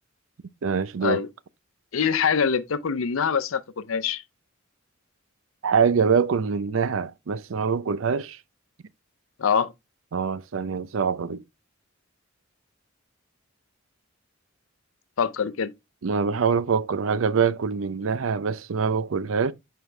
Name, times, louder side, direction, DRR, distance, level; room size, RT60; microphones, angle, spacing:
voice 1, 0.6-1.2 5.6-8.4 10.1-11.4 16.0-19.5, right 6 dB, 75° right, 0.5 m, -24 dB
voice 2, 1.9-4.2 9.4-9.7 15.2-15.7, left 6 dB, 85° left, 0.6 m, -24 dB
7.0 x 4.6 x 3.2 m
head